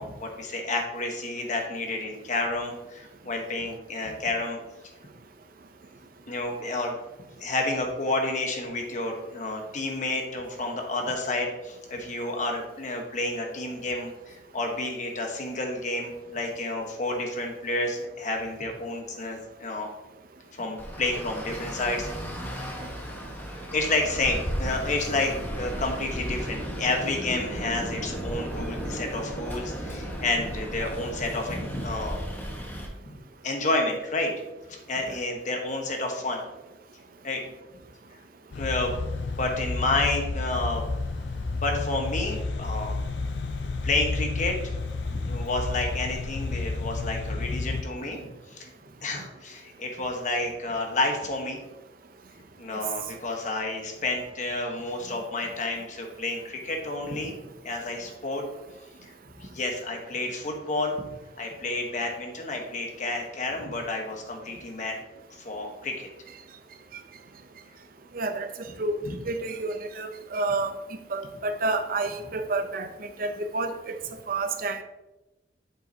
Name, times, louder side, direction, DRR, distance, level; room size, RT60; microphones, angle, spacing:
voice 1, 0.0-4.6 6.3-7.0 7.4-19.9 20.6-22.1 23.7-32.2 33.0-33.2 33.4-34.3 34.7-36.4 37.2-37.4 38.5-39.0 39.4-40.8 41.5-43.0 43.8-44.5 45.1-48.2 48.5-48.7 49.0-51.6 52.6-57.3 57.6-58.4 59.0-59.1 59.4-61.1 61.4-65.0 65.3-66.1 69.0-69.2, left 2 dB, 45° left, 1.1 m, -30 dB
Traffic noise roadway noise, 20.8-32.9, equal, 10° left, 1.2 m, -35 dB
sound 1, 38.5-47.8, left 3 dB, 85° left, 0.5 m, -31 dB
voice 2, 68.1-68.5 68.8-69.0 69.3-70.7 71.1-72.9 73.2-74.0 74.3-74.8, right 3 dB, 55° right, 0.6 m, -29 dB
7.5 x 5.6 x 2.8 m
head